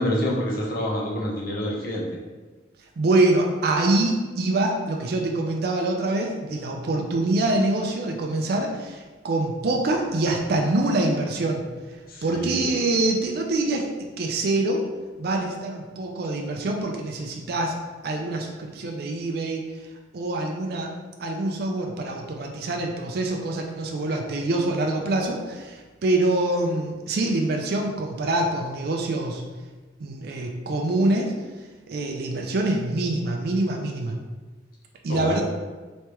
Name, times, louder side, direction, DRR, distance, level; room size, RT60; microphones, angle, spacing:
voice 1, 0.0-2.0 12.1-12.7 35.1-35.4, left 1 dB, 50° left, -2 dB, 0.7 m, -27 dB
voice 2, 3.0-11.7 12.2-13.9 14.2-14.9 15.2-17.7 18.0-19.6 20.1-20.9 21.2-29.4 30.0-31.3 31.9-34.2 35.0-35.4, right 2 dB, 55° right, 1 dB, 0.4 m, -25 dB
3.4 x 3.2 x 2.9 m, 1.3 s
head